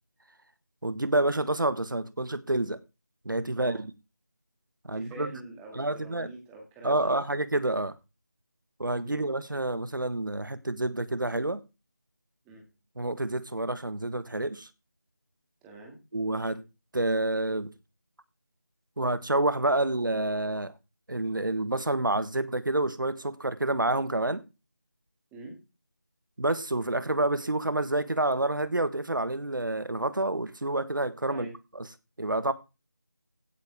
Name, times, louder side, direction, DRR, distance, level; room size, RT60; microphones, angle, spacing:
voice 1, 0.8-2.8 3.2-3.9 4.8-5.4 5.7-6.3 6.8-8.0 8.8-11.6 13.0-14.7 16.1-16.6 16.9-17.7 19.0-20.7 21.1-24.4 26.4-31.9 32.2-32.5, right 2 dB, 85° right, 1.4 m, -28 dB
voice 2, 4.9-7.1 9.0-9.2 12.5-12.6 15.6-16.0 25.3-25.6 31.3-31.5, right 2 dB, 5° right, 2.2 m, -44 dB
16.0 x 8.9 x 3.5 m
figure-of-eight pair, 170°, 11 cm